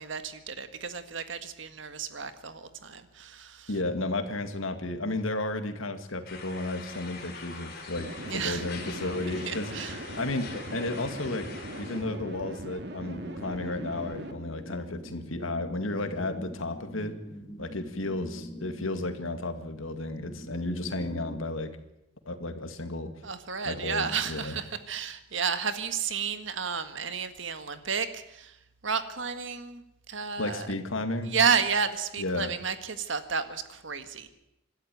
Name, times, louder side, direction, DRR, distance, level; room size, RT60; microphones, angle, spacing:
voice 1, 0.0-3.7 8.3-8.6 9.5-10.2 23.2-28.6 28.8-30.7 31.2-34.3, right 6 dB, 75° right, 10 dB, 1.8 m, -32 dB
voice 2, 3.7-9.8 10.2-17.2 17.6-21.8 22.3-23.1 23.6-24.6 30.4-31.4 32.2-32.5, left 2 dB, 85° left, 8 dB, 2.2 m, -33 dB
sound 1, 6.3-12.0, left 4 dB, 50° left, 3.7 m, -43 dB
sound 2, 7.9-14.3, right 1 dB, 55° right, 2.2 m, -40 dB
sound 3, 13.0-21.4, equal, 20° left, 3.6 m, -44 dB
26.0 x 12.5 x 9.3 m, 0.86 s
head